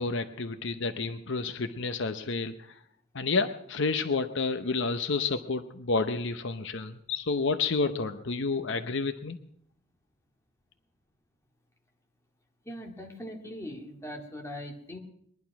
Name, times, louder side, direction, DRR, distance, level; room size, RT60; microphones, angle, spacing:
voice 1, 0.0-2.5 3.1-9.4, left 4 dB, 60° left, 9 dB, 0.8 m, -30 dB
voice 2, 12.7-15.0, equal, 15° left, 1 dB, 2.1 m, -40 dB
21.5 x 11.5 x 5.9 m, 0.70 s
head